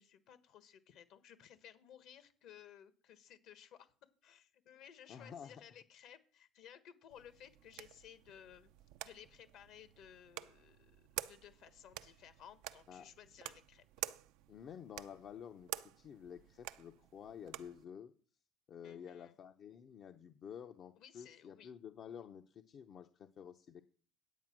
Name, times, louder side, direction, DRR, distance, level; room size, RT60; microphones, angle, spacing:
voice 1, 0.0-3.9 4.2-8.7 9.0-13.8 18.8-19.3 21.0-21.7, left 9 dB, 70° left, 11 dB, 1.4 m, -58 dB
voice 2, 5.1-5.6 12.9-13.1 14.5-18.1 18.7-23.8, left 8 dB, 50° left, 7 dB, 0.7 m, -51 dB
sound 1, 7.1-17.8, right 14 dB, 80° right, 0.5 m, -49 dB
9.2 x 8.5 x 6.0 m, 0.43 s
supercardioid pair, 100°, 0 cm